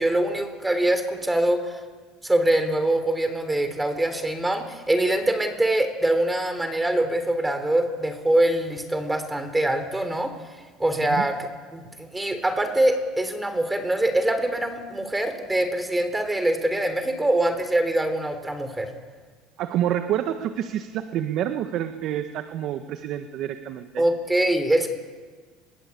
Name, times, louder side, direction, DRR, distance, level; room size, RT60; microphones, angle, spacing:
voice 1, 0.0-1.8 2.2-10.3 10.8-18.9 24.0-24.9, right 1 dB, 10° right, 8 dB, 3.7 m, -24 dB
voice 2, 19.6-24.0, right 11 dB, 55° right, 8 dB, 1.6 m, -28 dB
28.0 x 22.5 x 8.6 m, 1.5 s
supercardioid pair, 105°, 0 cm